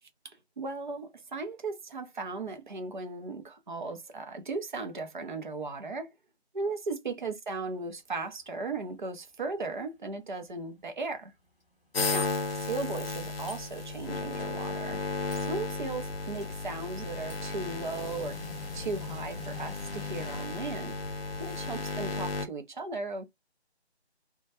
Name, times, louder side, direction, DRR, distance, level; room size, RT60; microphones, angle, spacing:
voice 1, 0.2-6.1 6.5-11.3 12.1-15.0 15.4-18.4 18.7-20.9 21.4-23.2, right 3 dB, 45° right, 0.6 m, -37 dB
sound 1, 11.9-22.5, left 3 dB, 60° left, 0.7 m, -34 dB
sound 2, 12.4-13.1 13.5-13.8 14.1-14.9 15.3-15.6 15.9-16.0 16.3-17.5 17.8-20.4, left 4 dB, ahead, 0.8 m, -46 dB
2.2 x 2.2 x 2.7 m
figure-of-eight pair, 160°, 33 cm